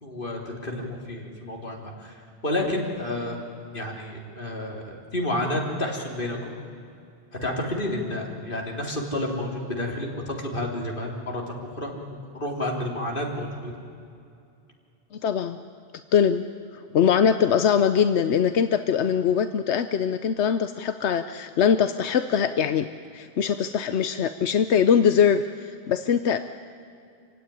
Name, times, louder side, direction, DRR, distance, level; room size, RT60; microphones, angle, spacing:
voice 1, 0.0-2.2 2.4-3.4 3.7-6.5 7.4-11.9 12.3-13.7, left 1 dB, 50° left, 0 dB, 3.6 m, -30 dB
voice 2, 15.2-15.6 16.1-16.4 16.9-26.4, left 7 dB, 90° left, 10 dB, 1.1 m, -22 dB
26.0 x 16.5 x 10.0 m, 2.5 s
omnidirectional pair, 1.1 m